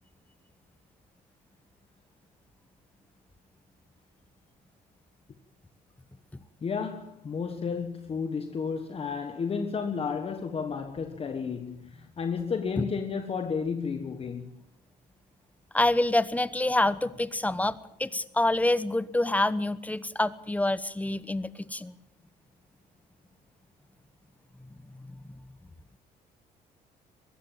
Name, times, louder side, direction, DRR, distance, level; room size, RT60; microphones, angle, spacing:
voice 1, 6.6-14.6, left 5 dB, 35° left, 1.5 m, -32 dB
voice 2, 15.7-21.9 25.1-25.2, left 1 dB, 10° left, 1.0 m, -27 dB
21.5 x 16.5 x 7.5 m
cardioid pair, 110°, 17 cm